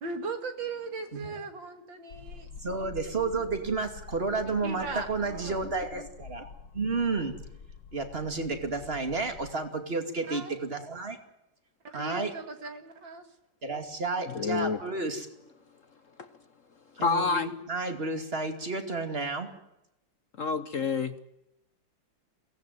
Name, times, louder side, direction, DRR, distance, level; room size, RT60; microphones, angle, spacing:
voice 1, 0.0-2.5 4.4-5.7 10.3-10.6 11.9-13.3, right 4 dB, 85° right, 7 dB, 3.1 m, -38 dB
sound 1, 2.1-9.5, left 6 dB, 70° left, 1.8 m, -47 dB
voice 2, 2.6-7.3 7.9-11.2 11.9-12.3 13.6-15.3 17.0-19.5, right 3 dB, 30° right, 6 dB, 2.7 m, -31 dB
voice 3, 14.3-14.8 16.2-16.3 17.0-17.5 20.4-21.1, left 4 dB, 50° left, 11 dB, 1.2 m, -28 dB
22.5 x 18.0 x 9.3 m, 0.88 s
omnidirectional pair, 2.0 m